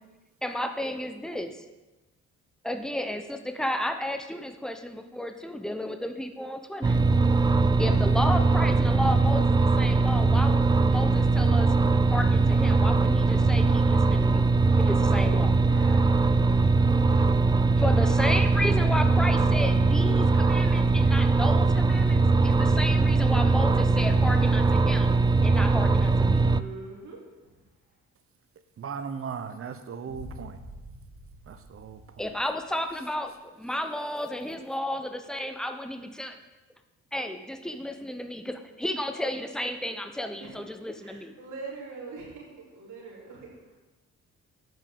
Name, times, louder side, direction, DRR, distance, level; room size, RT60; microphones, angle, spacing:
voice 1, 0.4-1.6 2.6-7.0 7.8-11.7 12.1-14.5 14.8-15.5 17.8-25.2 25.4-26.4 32.2-36.4 37.1-41.4, left 1 dB, ahead, 7 dB, 0.9 m, -32 dB
sound 1, 6.8-26.6, right 3 dB, 15° right, 0.3 m, -21 dB
voice 2, 14.1-17.3 26.3-27.6 40.4-40.6 41.0-43.8, right 3 dB, 75° right, -4 dB, 3.3 m, -44 dB
voice 3, 28.8-30.6 31.5-32.0, right 6 dB, 45° right, 10 dB, 1.0 m, -37 dB
sound 2, 30.1-33.0, equal, 60° left, 3.0 m, -46 dB
9.2 x 5.4 x 7.1 m, 1.1 s
cardioid pair, 90°, 30 cm